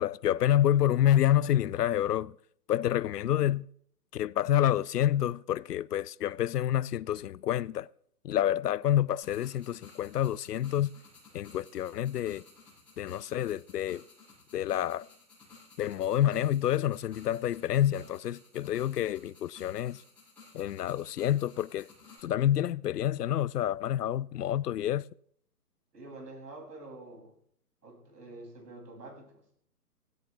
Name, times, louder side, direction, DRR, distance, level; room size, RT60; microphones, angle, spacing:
voice 1, 0.0-2.3 2.7-3.7 4.1-7.9 8.2-10.9 11.3-12.4 13.0-14.0 14.5-15.1 15.8-20.0 20.5-21.9 22.2-25.1, left 11 dB, 75° left, 0.6 m, -28 dB
sound 1, 9.2-22.2, left 4 dB, 5° left, 7.7 m, -56 dB
voice 2, 25.9-27.3 27.8-29.4, right 2 dB, 75° right, 7.8 m, -47 dB
17.5 x 16.5 x 3.5 m
hypercardioid pair, 170°, 48 cm